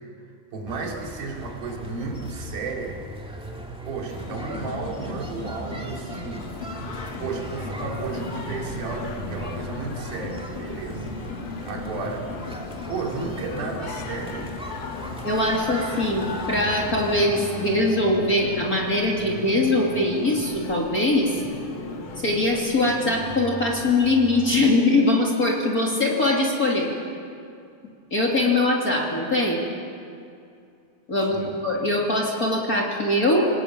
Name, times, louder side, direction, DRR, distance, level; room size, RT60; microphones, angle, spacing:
voice 1, 0.5-3.0 3.9-6.5 7.2-11.1 11.7-12.3 12.9-14.5 31.3-31.6, right 4 dB, 80° right, 0 dB, 4.6 m, -33 dB
sound 1, 0.7-17.2, right 1 dB, ahead, 1.2 m, -39 dB
sound 2, 4.1-23.1, left 3 dB, 85° left, 5.0 m, -38 dB
Singing, 6.3-24.6, left 3 dB, 55° left, 2.3 m, -39 dB
voice 2, 15.2-21.3 22.2-26.9 28.1-29.6 31.1-33.5, left 2 dB, 25° left, -2 dB, 2.8 m, -22 dB
26.0 x 19.5 x 8.8 m, 2.5 s
omnidirectional pair, 4.1 m